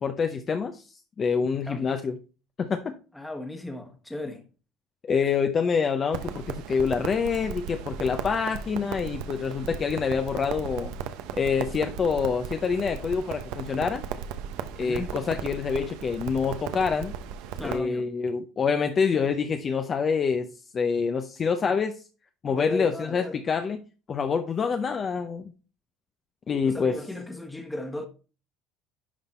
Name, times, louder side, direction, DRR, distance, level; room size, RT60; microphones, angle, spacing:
voice 1, 0.0-0.8 1.2-2.2 2.6-2.9 5.0-10.9 11.3-14.0 14.8-17.1 17.6-20.5 20.7-22.0 22.4-23.8 24.1-25.4 26.5-27.0, left 5 dB, 30° left, 0.6 m, -26 dB
voice 2, 3.1-4.4 14.8-15.1 17.6-18.1 22.5-23.4 26.6-28.1, left 1 dB, 5° left, 1.3 m, -36 dB
Crackle, 6.1-17.8, right 8 dB, 75° right, 0.9 m, -36 dB
11.0 x 3.9 x 4.2 m
cardioid pair, 145°, 0 cm